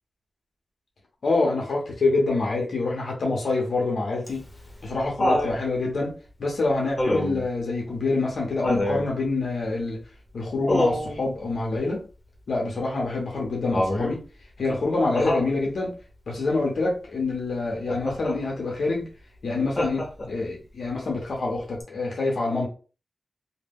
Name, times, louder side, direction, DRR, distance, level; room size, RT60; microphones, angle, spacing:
voice 1, 1.2-4.4 4.8-10.0 10.3-12.0 12.5-14.2 14.6-15.9 16.3-19.1 19.4-22.7, left 3 dB, 85° left, -1 dB, 0.7 m, -26 dB
Laughter, 4.3-5.6 7.0-7.5 8.6-9.1 10.7-11.2 13.7-14.2 15.1-15.5 17.9-18.4 19.8-20.4 21.8-21.9, left 1 dB, 35° left, 0.8 m, -26 dB
2.2 x 2.1 x 3.4 m, 0.36 s
wide cardioid pair, 85°, 0 cm